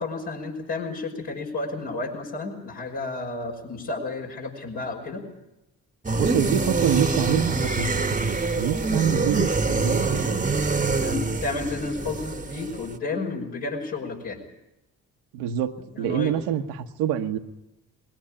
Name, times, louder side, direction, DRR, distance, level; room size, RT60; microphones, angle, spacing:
voice 1, 0.0-5.2 11.0-14.4 15.9-16.3, left 3 dB, 75° left, -2 dB, 5.9 m, -31 dB
sound 1, 6.0-12.9, right 3 dB, 20° right, 1.1 m, -25 dB
voice 2, 6.1-10.5 15.3-17.4, right 9 dB, 80° right, 6 dB, 1.2 m, -26 dB
20.5 x 18.0 x 8.6 m, 0.94 s
hypercardioid pair, 45°, 42 cm